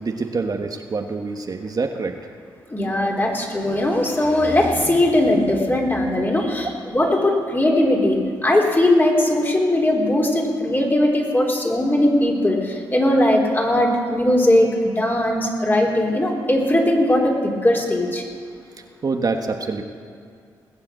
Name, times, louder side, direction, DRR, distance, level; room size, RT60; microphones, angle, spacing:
voice 1, 0.0-2.3 18.7-19.8, right 4 dB, 45° right, 4 dB, 1.3 m, -26 dB
voice 2, 2.7-6.7 6.9-14.7 15.0-18.2, left 1 dB, 25° left, 0 dB, 3.7 m, -19 dB
19.5 x 7.5 x 7.5 m, 2.2 s
supercardioid pair, 50°, 9 cm